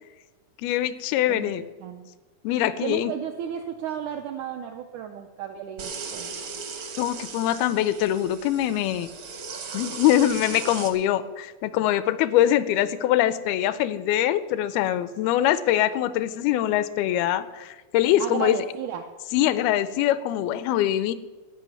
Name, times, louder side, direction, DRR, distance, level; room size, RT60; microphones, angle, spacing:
voice 1, 0.6-1.6 2.4-3.1 7.0-9.1 9.7-18.6 19.3-21.1, left 12 dB, 85° left, 15 dB, 2.5 m, -23 dB
voice 2, 2.8-6.4 18.2-19.1, right 9 dB, 85° right, 4 dB, 1.7 m, -33 dB
sound 1, 5.8-10.9, right 5 dB, 65° right, 1.3 m, -37 dB
13.5 x 5.7 x 9.2 m, 1.2 s
omnidirectional pair, 4.3 m